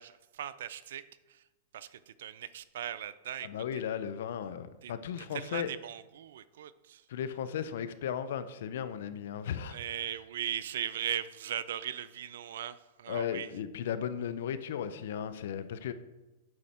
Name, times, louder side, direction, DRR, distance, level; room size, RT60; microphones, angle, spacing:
voice 1, 0.0-1.5 1.7-3.6 4.8-4.9 5.2-7.1 9.7-13.5, right 10 dB, 75° right, 16 dB, 0.4 m, -39 dB
voice 2, 3.4-5.7 7.1-9.8 13.1-15.9, left 8 dB, 70° left, 12 dB, 0.6 m, -36 dB
8.5 x 6.5 x 4.3 m, 1.1 s
supercardioid pair, 145°, 0 cm